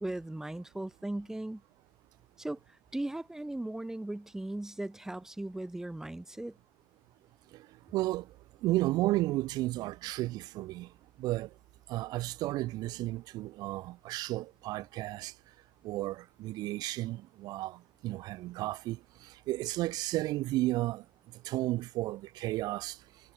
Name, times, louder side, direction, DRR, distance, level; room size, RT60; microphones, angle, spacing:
voice 1, 0.0-1.6 2.4-2.6 2.9-6.6, right 1 dB, 5° right, 1.5 m, -37 dB
voice 2, 7.9-8.3 8.6-10.9 11.2-11.5 11.9-15.3 15.8-21.0 21.4-23.0, right 17 dB, 75° right, 1.9 m, -33 dB
cardioid pair, 130°, 7 cm